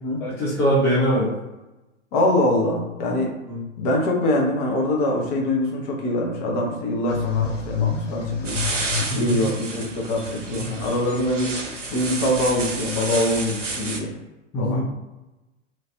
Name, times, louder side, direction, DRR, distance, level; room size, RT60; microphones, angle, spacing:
voice 1, 0.2-1.3 3.4-3.6 9.1-9.4 10.5-10.7 14.5-14.9, equal, 5° left, -7 dB, 0.3 m, -22 dB
voice 2, 2.1-3.3 3.8-8.6 9.2-11.5 11.9-14.1 14.6-14.9, left 1 dB, 35° left, -1 dB, 0.9 m, -23 dB
sound 1, 7.1-9.4, left 6 dB, 85° left, 0.8 m, -27 dB
sound 2, 8.4-14.0, right 3 dB, 85° right, 0.7 m, -31 dB
3.0 x 2.4 x 2.9 m, 1.0 s
figure-of-eight pair, 100°, 36 cm